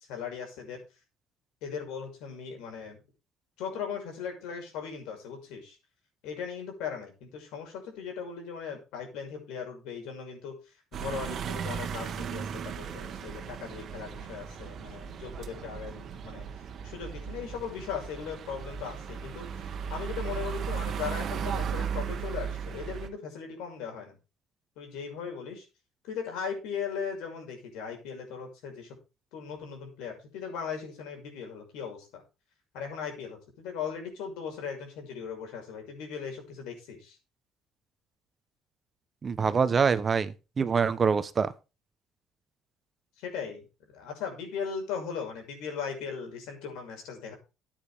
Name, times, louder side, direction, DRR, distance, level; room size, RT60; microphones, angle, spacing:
voice 1, 0.1-0.8 1.6-3.0 3.6-5.8 6.2-10.6 10.9-16.4 16.8-19.5 19.9-24.2 24.8-25.6 26.0-28.9 29.3-32.2 32.7-37.2 43.2-43.6 43.9-47.3, left 6 dB, 85° left, 6.1 m, -38 dB
sound 1, 10.9-23.1, right 7 dB, 45° right, 1.6 m, -36 dB
voice 2, 39.2-41.5, right 6 dB, 30° right, 0.9 m, -25 dB
14.5 x 9.1 x 3.6 m
cardioid pair, 135°, 0 cm